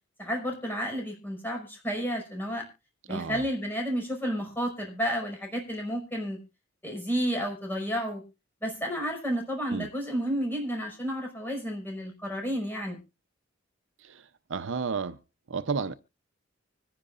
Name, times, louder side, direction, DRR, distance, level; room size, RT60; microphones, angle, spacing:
voice 1, 0.2-2.7 3.1-6.4 6.8-8.2 8.6-13.0, equal, 10° left, 5.6 m, -31 dB
voice 2, 3.1-3.4 9.7-9.9 14.0-15.2 15.5-15.9, right 5 dB, 65° right, 0.7 m, -32 dB
25.5 x 10.5 x 2.5 m
head